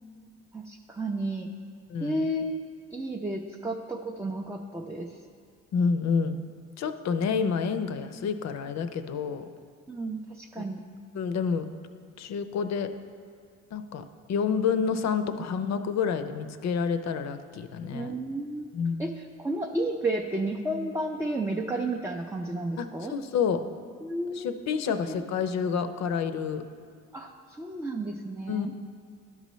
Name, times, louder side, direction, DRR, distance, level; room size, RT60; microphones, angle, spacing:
voice 1, 0.5-1.5 2.0-2.5 2.9-5.2 9.9-10.8 17.9-18.7 19.0-23.1 24.0-24.5 25.1-25.2 27.1-28.7, right 1 dB, 10° right, 1 dB, 0.4 m, -32 dB
voice 2, 1.9-2.2 5.7-6.4 6.8-9.4 10.6-10.7 11.1-11.7 12.2-12.9 13.7-14.0 14.3-18.1 18.7-19.0 22.8-23.6 24.3-26.6 28.5-28.7, left 6 dB, 65° left, 9 dB, 0.5 m, -28 dB
12.0 x 5.5 x 3.1 m, 2.1 s
cardioid pair, 90°, 30 cm